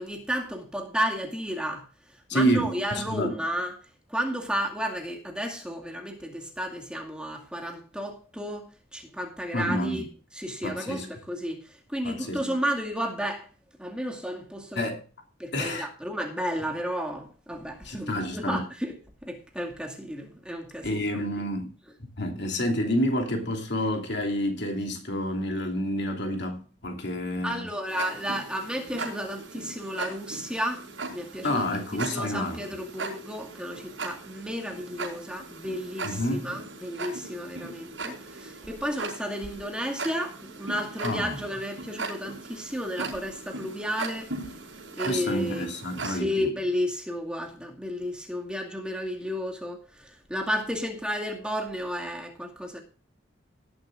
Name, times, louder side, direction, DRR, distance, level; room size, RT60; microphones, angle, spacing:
voice 1, 0.0-1.9 2.3-3.8 4.1-10.1 10.3-13.5 13.8-14.9 15.4-18.9 19.2-21.0 27.4-44.3 44.9-45.7 46.0-52.8, equal, 5° right, 2.2 m, -32 dB
voice 2, 2.3-3.3 9.5-10.0 10.6-11.1 12.0-12.4 14.8-15.0 15.5-15.9 17.8-18.7 20.8-21.7 22.0-27.7 31.4-32.6 36.0-36.4 41.0-41.4 45.0-46.5, equal, 65° left, 2.8 m, -29 dB
Tick-tock, 27.9-46.2, right 3 dB, 75° right, 5.2 m, -39 dB
18.5 x 10.5 x 2.6 m
head